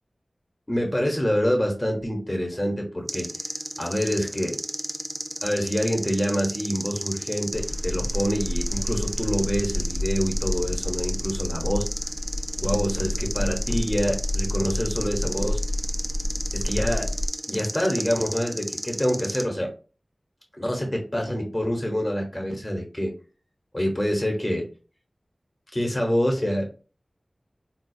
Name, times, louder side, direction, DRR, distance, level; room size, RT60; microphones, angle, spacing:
voice 1, 0.7-3.3 3.8-4.6 5.4-11.9 12.6-15.6 16.5-17.1 17.5-19.7 20.5-23.1 23.7-24.7 25.7-26.7, equal, 20° left, 1 dB, 1.0 m, -26 dB
sound 1, 3.1-19.4, right 1 dB, 35° right, 0.5 m, -33 dB
sound 2, 7.5-17.3, left 1 dB, 55° left, 0.5 m, -29 dB
3.8 x 2.4 x 2.7 m, 0.36 s
wide cardioid pair, 60°, 0 cm